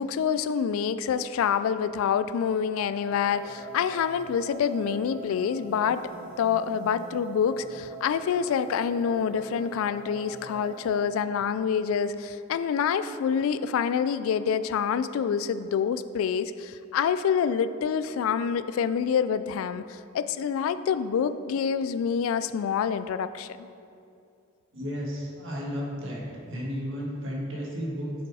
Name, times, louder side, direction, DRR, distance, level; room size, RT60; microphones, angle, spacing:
voice 1, 0.0-6.0 6.4-23.6, left 7 dB, 80° left, 14 dB, 0.3 m, -27 dB
sound 1, 3.0-11.0, right 3 dB, 50° right, 1.6 m, -43 dB
voice 2, 24.7-28.1, equal, 65° right, -4 dB, 1.6 m, -33 dB
6.5 x 5.4 x 4.8 m, 2.5 s
head